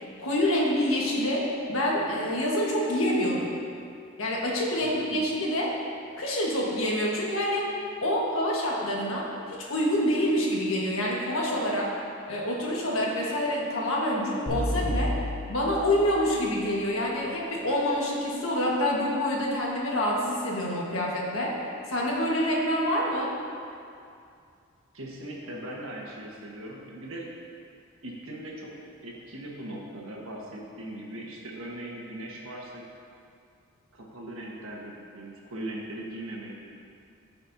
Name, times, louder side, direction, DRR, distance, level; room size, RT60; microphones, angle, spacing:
voice 1, 0.2-1.4 1.7-3.5 4.2-5.7 6.2-7.7 8.0-11.9 12.3-15.1 15.5-21.5 21.9-23.3, left 1 dB, 80° left, -3 dB, 1.5 m, -27 dB
voice 2, 4.8-5.2 24.9-27.3 28.0-28.8 29.0-32.8 33.9-36.6, right 1 dB, 85° right, -2 dB, 1.4 m, -39 dB
sound 1, 14.5-16.6, equal, 25° right, 1.5 m, -31 dB
14.0 x 5.3 x 2.8 m, 2.4 s
head